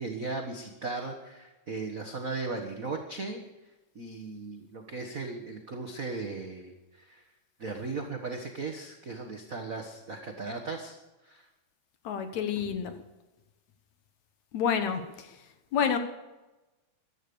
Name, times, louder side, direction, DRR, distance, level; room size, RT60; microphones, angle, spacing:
voice 1, 0.0-3.4 3.9-7.2 7.6-11.0 11.2-11.5, right 3 dB, 65° right, 1 dB, 0.8 m, -37 dB
voice 2, 12.0-13.0 14.5-15.3 15.7-16.0, left 7 dB, 65° left, 8 dB, 2.3 m, -28 dB
15.0 x 12.0 x 6.9 m, 1.1 s
omnidirectional pair, 3.8 m